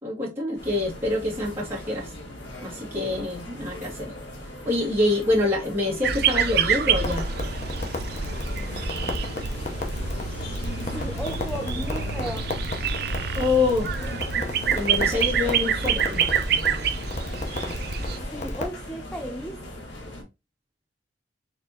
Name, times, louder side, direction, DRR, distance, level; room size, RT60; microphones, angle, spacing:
voice 1, 0.0-2.1 2.6-4.1 4.7-7.3 13.3-13.9 14.7-16.2, left 2 dB, 15° right, 2.0 m, -26 dB
sound 1, 0.6-20.2, left 1 dB, 90° left, 1.6 m, -39 dB
sound 2, 6.0-18.2, right 8 dB, 60° right, 0.5 m, -27 dB
Crackle, 7.0-18.7, left 1 dB, 40° left, 0.7 m, -33 dB
voice 2, 10.8-12.5 18.2-19.6, equal, 5° left, 0.3 m, -35 dB
4.3 x 3.3 x 2.8 m
head